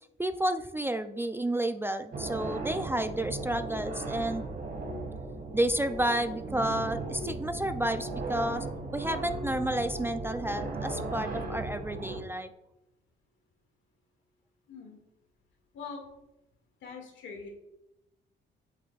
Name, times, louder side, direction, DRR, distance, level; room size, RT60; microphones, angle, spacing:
voice 1, 0.2-4.5 5.5-8.7 8.9-12.5, right 1 dB, 10° right, 10 dB, 0.4 m, -31 dB
sound 1, 2.1-12.2, right 3 dB, 50° right, 2.0 m, -36 dB
voice 2, 16.8-17.5, left 5 dB, 75° left, 2 dB, 2.0 m, -42 dB
8.4 x 7.4 x 2.4 m, 0.89 s
cardioid pair, 90°, 20 cm